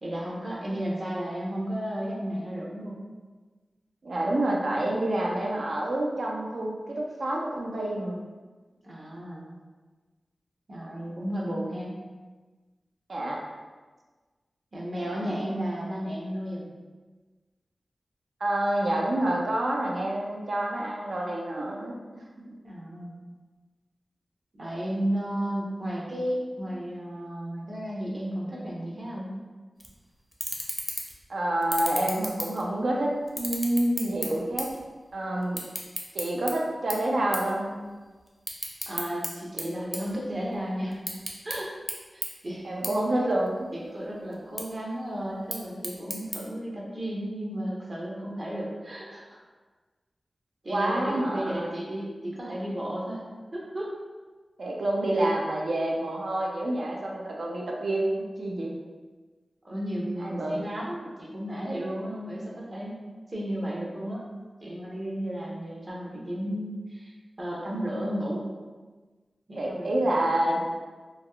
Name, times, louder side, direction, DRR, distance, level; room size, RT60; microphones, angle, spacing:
voice 1, 0.0-3.0 8.8-9.5 10.7-11.9 14.7-16.7 22.6-23.1 24.5-29.4 38.9-41.0 41.4-41.7 42.1-42.7 43.7-49.4 50.6-53.2 53.5-53.9 59.6-63.0 63.3-64.3 64.6-67.1 67.4-68.5 69.5-69.9, equal, 50° right, -4 dB, 0.8 m, -33 dB
voice 2, 4.0-8.2 13.1-13.4 15.0-15.4 18.4-21.9 26.7-26.8 31.3-34.7 35.1-35.6 36.1-37.8 42.6-43.7 50.7-51.7 54.6-58.7 60.2-60.6 69.6-70.7, right 1 dB, 75° right, -2 dB, 0.4 m, -28 dB
sound 1, 29.8-29.9 30.3-31.2 31.6-32.9 33.3-34.8 35.1-36.5 36.9-37.1 37.3-37.5 37.9-39.3 39.6-40.6 40.9-41.6 41.9-42.0 42.2-42.3 42.8-42.9 43.3-43.9 44.3-44.6 45.3-46.4, equal, 10° right, 0.6 m, -33 dB
3.3 x 2.3 x 2.2 m, 1.3 s
cardioid pair, 50°, 0 cm